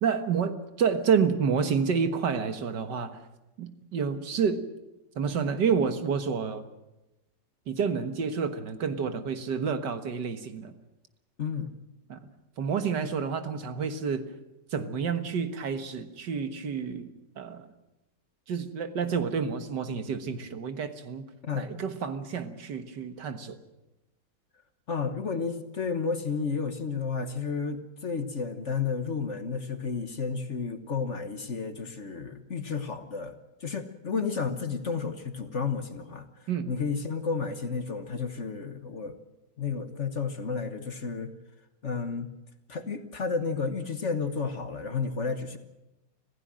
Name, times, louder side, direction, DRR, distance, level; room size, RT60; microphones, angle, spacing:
voice 1, 0.0-3.2 3.6-4.6 5.2-6.6 7.7-10.7 12.1-12.2 12.6-14.2 14.7-17.1 17.4-17.7 18.5-21.3 21.5-23.6 36.5-36.7, right 6 dB, 70° right, 9 dB, 2.0 m, -29 dB
voice 2, 11.4-11.7 21.4-21.7 24.9-33.3 33.6-36.2 36.7-39.1 39.6-41.3 41.8-42.3 42.7-45.6, left 5 dB, 45° left, 9 dB, 1.4 m, -32 dB
25.5 x 15.5 x 7.6 m, 0.97 s
omnidirectional pair, 2.0 m